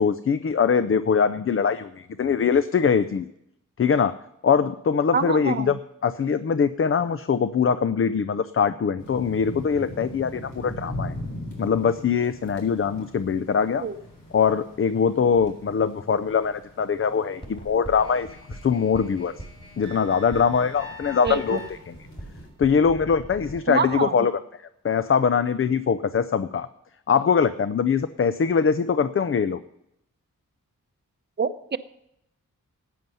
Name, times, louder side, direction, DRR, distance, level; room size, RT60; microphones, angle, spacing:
voice 1, 0.0-3.3 3.8-4.1 4.4-11.1 11.6-13.9 14.3-19.3 19.8-21.9 22.6-24.3 24.8-26.7 27.1-29.6, left 6 dB, 40° left, 13 dB, 0.4 m, -22 dB
voice 2, 5.1-5.7 13.8-13.9 21.2-21.6 23.7-24.1 31.4-31.8, right 5 dB, 30° right, 10 dB, 0.7 m, -26 dB
sound 1, 9.0-22.5, left 1 dB, 90° left, 3.9 m, -41 dB
sound 2, 17.4-23.6, equal, 15° left, 3.8 m, -41 dB
14.5 x 9.4 x 5.5 m, 0.79 s
wide cardioid pair, 125°, 32 cm